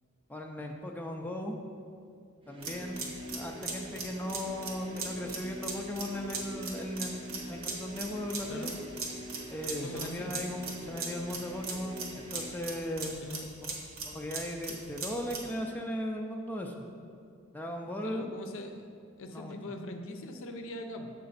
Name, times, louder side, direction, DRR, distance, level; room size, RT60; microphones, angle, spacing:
voice 1, 0.3-1.6 2.5-3.0 3.3-8.7 9.5-13.2 13.6-13.8 14.0-16.7 17.5-18.3 19.3-19.6, left 1 dB, 10° left, 1 dB, 0.4 m, -37 dB
sound 1, 2.4-12.8, equal, 25° right, 0.8 m, -45 dB
sound 2, 2.6-15.5, right 4 dB, 65° right, 1.0 m, -39 dB
voice 2, 8.5-8.8 9.7-10.4 13.2-13.5 18.0-18.8 19.2-21.1, left 1 dB, 65° left, 5 dB, 0.6 m, -42 dB
6.7 x 5.1 x 4.0 m, 2.3 s
head